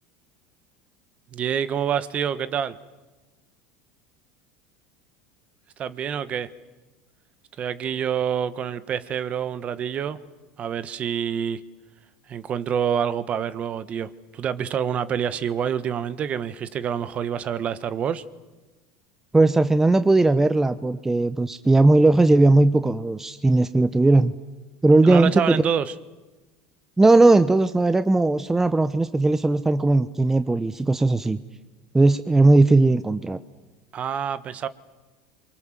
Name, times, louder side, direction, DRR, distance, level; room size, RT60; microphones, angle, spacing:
voice 1, 1.3-2.8 5.8-6.5 7.6-10.2 10.6-11.6 12.3-18.2 25.0-25.9 33.9-34.7, right 8 dB, 40° right, 15 dB, 1.4 m, -27 dB
voice 2, 19.3-24.3 24.8-25.6 27.0-31.4 31.9-33.4, right 2 dB, 10° right, 11 dB, 0.9 m, -18 dB
29.0 x 24.0 x 7.5 m, 1.2 s
supercardioid pair, 105°, 3 cm